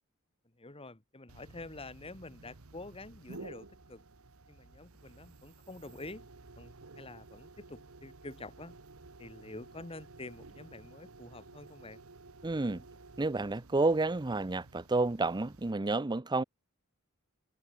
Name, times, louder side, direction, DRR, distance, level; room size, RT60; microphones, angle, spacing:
voice 1, 0.6-4.0 4.5-6.3 6.6-8.8 9.2-12.0, left 2 dB, 25° left, 1.9 m, -47 dB
sound 1, 1.3-15.7, right 3 dB, 85° right, 1.3 m, -53 dB
voice 2, 12.4-12.8 13.2-16.4, right 3 dB, 20° right, 0.6 m, -30 dB
head